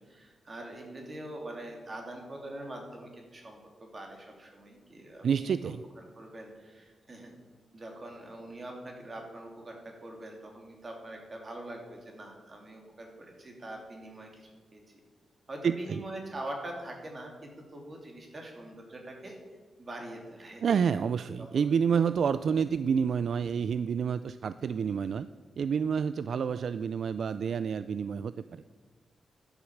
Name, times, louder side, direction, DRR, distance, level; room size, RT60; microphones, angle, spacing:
voice 1, 0.0-5.7 6.2-7.3 7.7-14.8 15.5-19.4 19.8-20.6 21.1-21.6, right 1 dB, 35° right, 1 dB, 2.9 m, -43 dB
voice 2, 5.2-5.8 15.6-16.0 20.6-25.3 25.6-28.6, right 6 dB, 65° right, 13 dB, 0.3 m, -29 dB
11.5 x 8.0 x 7.1 m, 1.4 s
wide cardioid pair, 120°, 0 cm